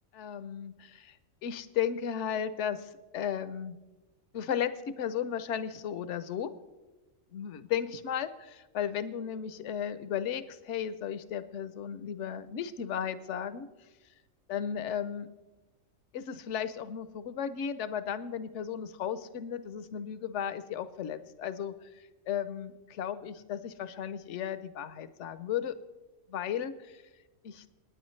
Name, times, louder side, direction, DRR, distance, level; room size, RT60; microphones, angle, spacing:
voice 1, 0.1-1.2 1.4-3.8 4.3-6.5 7.3-13.7 14.5-15.3 16.1-21.7 22.3-25.8 26.3-27.0 27.4-27.6, left 8 dB, 65° left, 13 dB, 1.0 m, -35 dB
27.0 x 9.6 x 3.2 m, 1.1 s
omnidirectional pair, 1.4 m